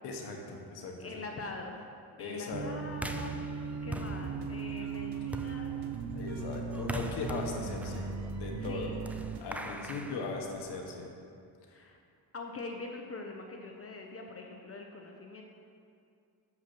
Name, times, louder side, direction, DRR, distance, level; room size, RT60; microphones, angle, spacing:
voice 1, 0.0-1.2 2.2-2.7 6.1-8.9 9.4-11.1, left 4 dB, 85° left, 1 dB, 1.2 m, -39 dB
voice 2, 1.0-5.9 8.6-9.0 9.6-9.8 11.7-12.0 12.3-15.4, left 3 dB, 35° left, 2 dB, 0.7 m, -43 dB
sound 1, 2.5-9.4, right 5 dB, 45° right, 0.6 m, -38 dB
sound 2, 2.9-11.0, right 1 dB, 5° right, 0.3 m, -43 dB
sound 3, 4.1-9.7, right 6 dB, 85° right, 0.8 m, -53 dB
6.4 x 5.6 x 6.1 m, 2.5 s
cardioid pair, 105°, 39 cm